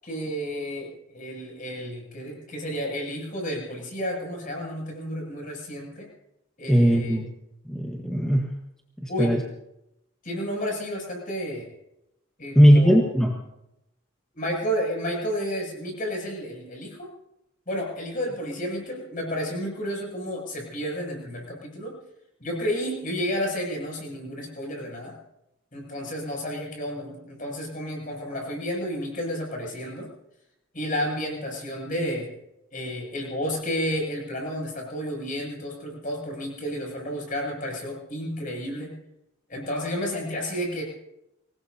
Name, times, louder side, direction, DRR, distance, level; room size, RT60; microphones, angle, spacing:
voice 1, 0.0-6.1 6.6-7.2 9.1-9.3 10.2-11.7 12.4-13.0 14.3-17.1 17.7-21.9 22.4-25.1 25.7-30.1 30.7-32.3 32.7-38.9 39.5-40.8, equal, 40° left, -1 dB, 7.8 m, -31 dB
voice 2, 6.7-7.3 7.7-8.4 9.2-9.4 12.5-13.3, equal, 5° left, -1 dB, 1.4 m, -18 dB
25.5 x 20.0 x 2.9 m, 0.85 s
head